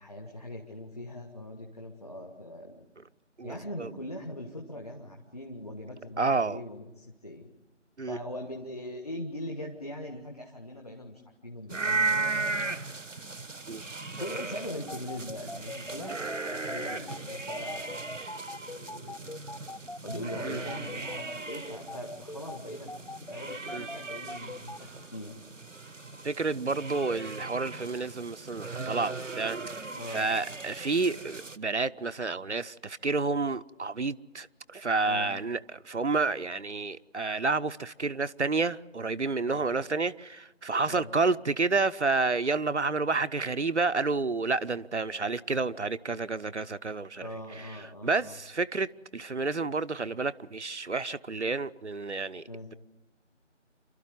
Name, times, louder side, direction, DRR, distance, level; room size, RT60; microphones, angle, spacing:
voice 1, 0.0-2.9 3.4-7.5 8.1-12.8 14.2-16.2 16.5-18.2 18.5-19.2 20.0-22.9 23.2-25.4 30.0-30.2 35.0-35.3 39.5-39.7 40.9-41.1 47.2-48.4 52.5-52.7, left 1 dB, 30° left, 1.5 m, -41 dB
voice 2, 3.4-3.9 6.2-6.6 8.0-8.2 13.7-13.8 20.4-20.6 23.7-23.9 26.2-29.6 30.1-47.3 47.6-47.8 48.0-52.4, right 3 dB, 65° right, 0.7 m, -30 dB
sound 1, 11.7-31.6, right 3 dB, 85° right, 1.0 m, -37 dB
sound 2, 14.9-24.8, left 2 dB, 45° left, 0.8 m, -41 dB
27.5 x 12.5 x 9.4 m
figure-of-eight pair, 170°, 37 cm